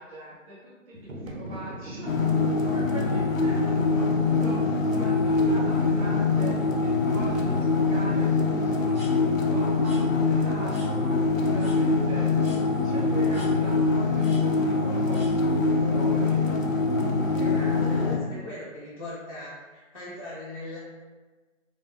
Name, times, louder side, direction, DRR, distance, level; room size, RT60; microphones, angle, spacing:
voice 1, 0.0-16.4, right 2 dB, 30° right, -12 dB, 0.5 m, -42 dB
sound 1, 0.9-8.3, equal, 90° right, 0.7 m, -39 dB
sound 2, 2.1-18.2, left 3 dB, 85° left, 0.6 m, -24 dB
sound 3, 9.0-9.1 9.8-10.0 10.7-10.9 11.6-11.8 12.4-12.6 13.3-13.5 14.2-14.4 15.1-15.3, left 1 dB, 5° right, 0.8 m, -47 dB
voice 2, 17.3-20.8, left 1 dB, 30° left, -11 dB, 0.4 m, -39 dB
2.2 x 2.1 x 3.3 m, 1.3 s
hypercardioid pair, 150°, 39 cm